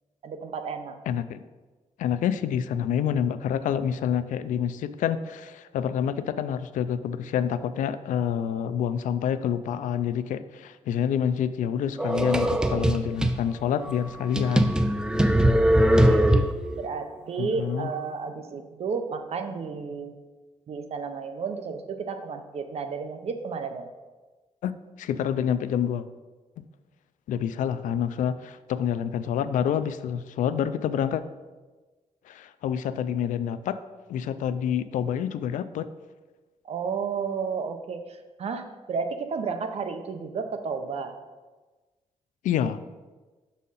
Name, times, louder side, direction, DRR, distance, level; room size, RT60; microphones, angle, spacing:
voice 1, 0.2-0.9 15.5-16.3 16.8-20.1 20.7-23.9 36.6-41.2, right 5 dB, 55° right, 7 dB, 0.7 m, -32 dB
voice 2, 1.1-1.4 2.0-14.7 17.4-17.9 24.6-26.1 26.6-26.7 27.3-31.2 32.3-33.8 34.1-35.9 42.4-42.8, left 8 dB, 90° left, 13 dB, 0.4 m, -27 dB
sound 1, 12.0-13.4 13.9-14.0 14.4-16.8, right 1 dB, 5° right, 0.3 m, -21 dB
6.2 x 4.2 x 5.5 m, 1.3 s
wide cardioid pair, 135°, 13 cm